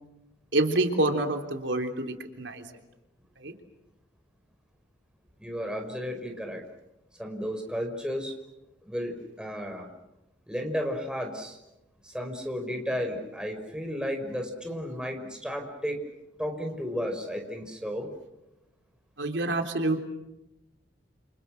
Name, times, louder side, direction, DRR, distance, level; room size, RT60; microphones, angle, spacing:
voice 1, 0.5-2.6 3.4-3.5 19.2-20.0, right 2 dB, 85° right, 4 dB, 3.5 m, -27 dB
voice 2, 5.4-6.6 7.2-8.3 8.8-9.9 10.5-11.6 12.0-16.0 16.4-18.1, equal, 5° right, 4 dB, 5.3 m, -33 dB
30.0 x 29.5 x 6.6 m, 0.94 s
head